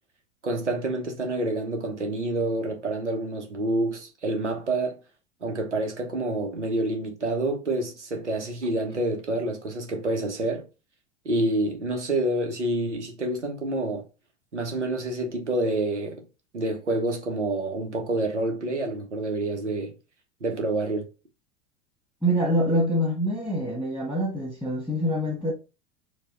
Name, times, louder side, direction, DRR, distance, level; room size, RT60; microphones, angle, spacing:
voice 1, 0.4-5.0 5.4-10.6 11.2-14.0 14.5-16.2 16.5-19.9 20.4-21.1, right 2 dB, 85° right, 1.2 m, -28 dB
voice 2, 22.2-25.5, equal, 5° right, 1.7 m, -25 dB
4.7 x 2.7 x 3.9 m
figure-of-eight pair, 80°, 34 cm